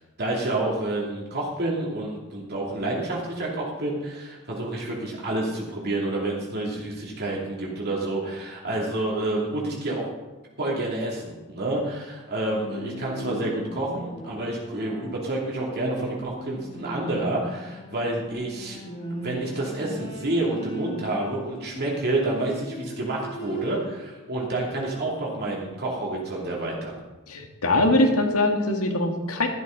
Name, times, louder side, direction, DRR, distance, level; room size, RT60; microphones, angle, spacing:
voice 1, 0.2-10.1 10.6-18.8 19.1-26.9, right 2 dB, 50° right, -3 dB, 2.8 m, -29 dB
Bowed string instrument, 12.3-24.1 24.4-25.2, equal, 30° left, 2.6 m, -39 dB
voice 2, 27.3-29.5, left 1 dB, 80° left, 4 dB, 1.8 m, -22 dB
13.5 x 12.5 x 4.0 m, 1.1 s
head